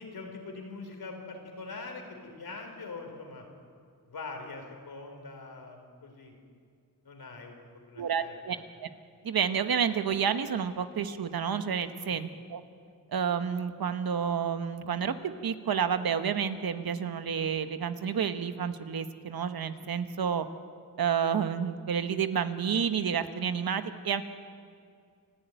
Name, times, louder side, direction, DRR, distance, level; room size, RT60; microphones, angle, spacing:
voice 1, 0.0-3.4 4.1-6.3 7.0-8.6 11.9-12.2, left 3 dB, 85° left, 3 dB, 4.1 m, -43 dB
voice 2, 8.0-8.6 8.8-8.9 9.2-12.6 13.1-15.1 15.4-20.5 21.0-24.2, right 7 dB, 85° right, 9 dB, 1.2 m, -30 dB
28.5 x 11.5 x 9.1 m, 2.2 s
cardioid pair, 60°, 36 cm